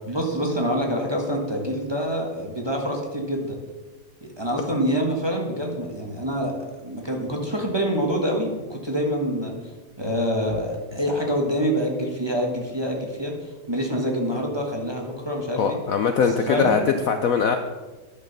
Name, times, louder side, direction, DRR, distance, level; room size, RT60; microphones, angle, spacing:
voice 1, 0.1-3.6 4.2-6.5 6.8-9.5 10.0-15.8 16.5-16.8, equal, 15° right, 0 dB, 1.4 m, -26 dB
voice 2, 15.6-17.6, left 6 dB, 65° left, 7 dB, 0.9 m, -21 dB
10.5 x 6.6 x 6.7 m, 1.3 s
omnidirectional pair, 2.0 m